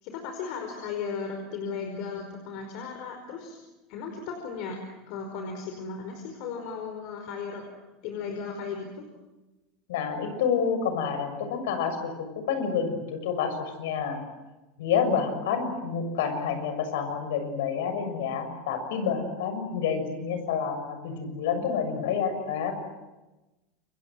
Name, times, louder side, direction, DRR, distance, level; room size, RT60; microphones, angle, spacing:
voice 1, 0.0-3.6 3.9-4.8 5.1-7.7 8.0-9.0, left 5 dB, 60° left, 4 dB, 5.1 m, -36 dB
voice 2, 9.9-14.2 14.8-22.8, left 6 dB, 85° left, 8 dB, 6.7 m, -28 dB
28.5 x 24.0 x 7.8 m, 1.1 s
supercardioid pair, 135°, 0 cm